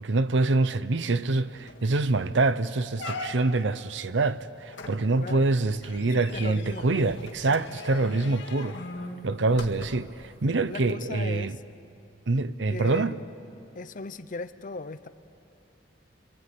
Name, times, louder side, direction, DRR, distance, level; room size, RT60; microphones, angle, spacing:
voice 1, 0.0-8.8 9.2-11.6 12.3-13.2, right 3 dB, 75° right, 0.8 m, -25 dB
sound 1, 1.2-1.3 1.7-2.0 2.4-2.5 3.0-3.7 4.7-10.2 10.8-10.9, left 2 dB, 75° left, 1.9 m, -41 dB
voice 2, 5.2-5.5 6.0-7.2 10.7-11.6 12.7-13.3 13.7-15.1, left 3 dB, 45° left, 0.8 m, -38 dB
27.5 x 24.0 x 8.6 m
head